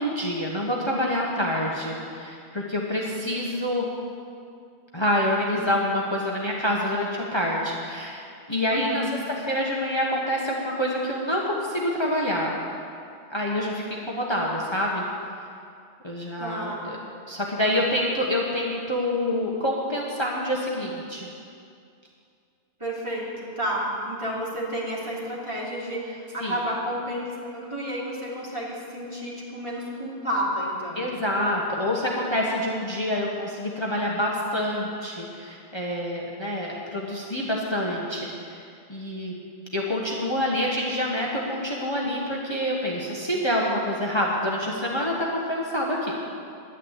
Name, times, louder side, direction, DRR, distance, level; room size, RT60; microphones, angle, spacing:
voice 1, 0.0-3.9 4.9-8.2 8.5-9.0 9.3-12.6 13.3-15.0 16.0-17.0 17.3-21.3 26.4-26.5 30.9-38.6 38.9-39.3 39.7-46.2, left 1 dB, 25° left, -3 dB, 1.4 m, -27 dB
voice 2, 8.7-9.1 16.4-16.8 22.8-23.3 23.6-31.0, equal, 30° right, -6 dB, 3.1 m, -30 dB
11.0 x 10.5 x 8.2 m, 2.4 s
omnidirectional pair, 1.1 m